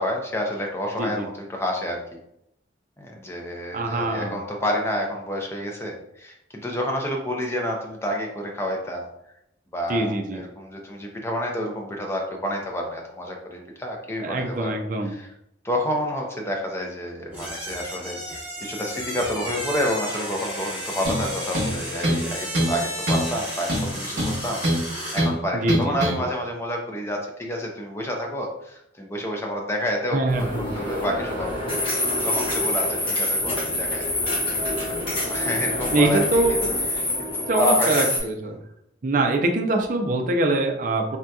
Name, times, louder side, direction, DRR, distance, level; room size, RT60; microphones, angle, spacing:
voice 1, 0.0-2.0 3.0-9.1 9.7-14.7 15.0-15.3 15.6-35.0 35.3-36.2 36.5-36.6 36.9-38.1, equal, 15° left, 0 dB, 0.5 m, -29 dB
voice 2, 3.7-4.4 9.9-10.4 14.2-15.2 25.6-26.0 30.1-30.6 35.9-36.8 37.5-38.6 39.0-41.2, right 2 dB, 45° right, 3 dB, 0.4 m, -23 dB
sound 1, 17.3-25.3, equal, 10° right, 1.0 m, -33 dB
sound 2, 21.0-21.3 21.5-22.3 22.5-22.8 23.1-23.3 23.7-24.8 25.2-25.3 25.7-26.2, equal, 65° right, 1.0 m, -23 dB
sound 3, 30.3-38.2, left 1 dB, 30° left, 1.1 m, -26 dB
3.5 x 2.7 x 2.3 m, 0.79 s
head